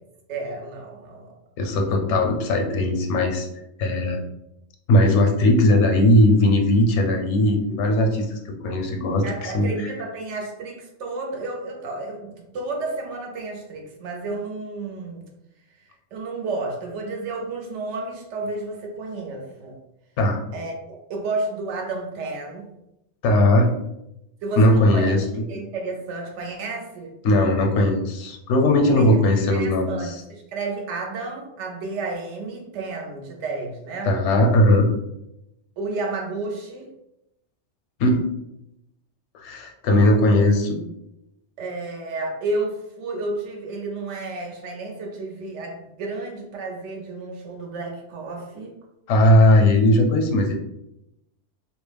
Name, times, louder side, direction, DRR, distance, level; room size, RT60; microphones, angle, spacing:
voice 1, 0.3-1.3 9.2-15.2 15.8-19.7 20.5-22.7 24.4-25.1 25.5-27.1 28.9-34.2 35.8-36.9 41.6-48.7, right 3 dB, 90° right, 1 dB, 0.9 m, -31 dB
voice 2, 1.6-3.5 3.8-4.2 4.9-9.7 20.2-20.4 23.2-23.7 24.6-25.2 27.2-30.1 34.1-34.9 38.0-38.2 39.3-40.8 49.1-50.5, left 1 dB, 80° left, 2 dB, 0.9 m, -18 dB
2.3 x 2.0 x 3.2 m, 0.85 s
omnidirectional pair, 1.2 m